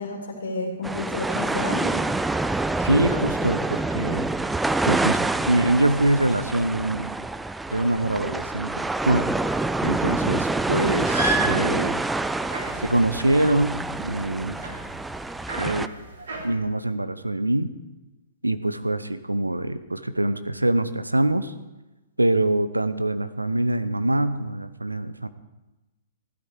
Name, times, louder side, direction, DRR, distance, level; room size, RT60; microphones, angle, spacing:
voice 1, 0.0-1.9 10.2-10.3, left 2 dB, 65° left, 1 dB, 3.0 m, -31 dB
sound 1, 0.8-15.9, right 2 dB, 5° right, 0.4 m, -27 dB
voice 2, 2.8-4.3 4.9-5.2 5.5-7.1 7.7-9.3 9.8-12.0 12.8-14.6 15.6-15.9 16.4-17.7 18.4-21.5 22.2-25.3, right 1 dB, 85° right, 12 dB, 0.8 m, -24 dB
sound 2, 10.7-16.5, right 2 dB, 65° right, 3.6 m, -33 dB
15.5 x 12.5 x 4.7 m, 1.1 s
figure-of-eight pair, 115°, 0 cm